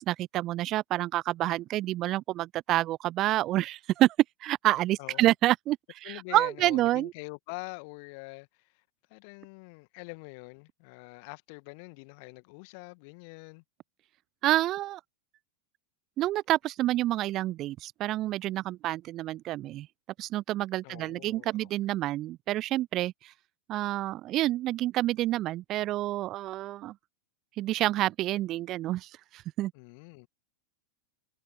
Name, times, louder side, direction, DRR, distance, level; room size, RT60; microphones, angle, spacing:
voice 1, 0.0-4.2 4.4-5.8 6.0-7.1 14.4-15.0 16.2-19.9 20.2-23.3 23.7-26.9 27.6-29.7, right 15 dB, 35° right, 0.4 m, -28 dB
voice 2, 5.0-5.3 6.0-8.8 9.1-13.6 20.8-21.7 29.7-30.3, left 33 dB, 45° left, 1.9 m, -45 dB
figure-of-eight pair, 90°, 0 cm